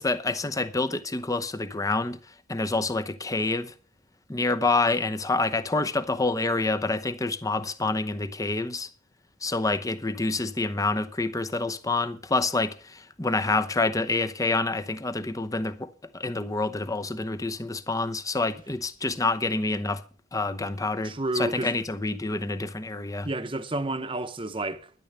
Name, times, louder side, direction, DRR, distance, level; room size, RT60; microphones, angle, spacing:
voice 1, 0.0-3.7 4.3-8.9 9.4-20.0 20.3-23.3, left 3 dB, 15° left, 0.9 m, -27 dB
voice 2, 21.0-21.8 23.2-24.9, right 2 dB, 25° right, 1.0 m, -30 dB
12.0 x 10.5 x 6.8 m
head